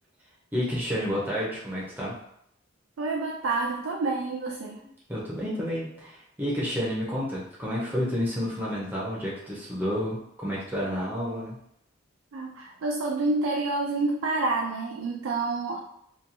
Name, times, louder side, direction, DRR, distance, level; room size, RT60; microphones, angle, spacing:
voice 1, 0.5-2.1 5.1-11.6, equal, 10° right, -6 dB, 0.5 m, -30 dB
voice 2, 3.0-4.8 12.3-15.8, right 3 dB, 90° right, -1 dB, 0.4 m, -28 dB
2.8 x 2.2 x 2.5 m, 0.74 s
head